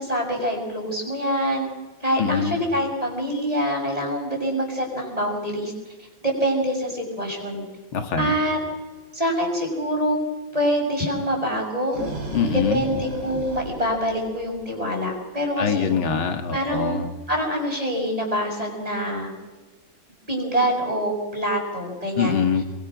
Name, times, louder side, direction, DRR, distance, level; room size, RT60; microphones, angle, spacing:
voice 1, 0.0-1.6 2.0-5.7 6.2-7.6 8.2-8.6 9.1-10.2 10.5-12.0 12.5-15.9 16.5-17.0 17.3-19.3 20.3-22.4, equal, 15° right, 1 dB, 6.4 m, -25 dB
voice 2, 2.2-2.6 7.9-8.3 12.3-12.8 15.6-17.1 22.2-22.6, left 6 dB, 85° left, 6 dB, 2.6 m, -23 dB
sound 1, 11.7-14.8, right 2 dB, 60° right, 5.0 m, -34 dB
29.0 x 23.0 x 6.2 m, 1.2 s
omnidirectional pair, 2.2 m